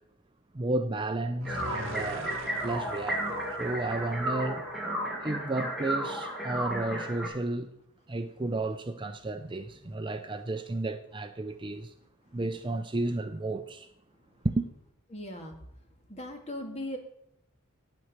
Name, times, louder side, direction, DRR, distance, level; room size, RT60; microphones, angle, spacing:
voice 1, 0.5-4.6 5.2-7.7 8.1-11.9 12.3-13.9 14.4-14.7, right 2 dB, 20° right, 0.5 m, -32 dB
sound 1, 1.4-4.6, equal, 60° right, 1.3 m, -43 dB
sound 2, 1.5-7.3, right 1 dB, ahead, 2.3 m, -33 dB
voice 2, 15.1-15.5 16.1-17.0, left 1 dB, 30° left, 1.9 m, -38 dB
9.4 x 9.3 x 6.6 m
head